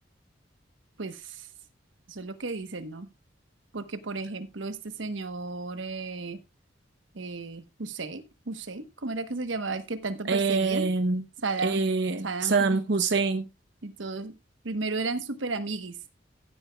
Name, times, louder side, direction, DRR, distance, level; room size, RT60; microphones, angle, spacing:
voice 1, 1.0-1.5 2.1-3.1 3.7-6.4 7.1-10.9 11.4-11.8 12.2-12.8 13.8-14.4 14.6-16.0, right 3 dB, 90° right, 1.1 m, -34 dB
voice 2, 10.3-11.2 11.6-13.5, right 4 dB, 65° right, 0.8 m, -25 dB
15.0 x 8.8 x 2.3 m
head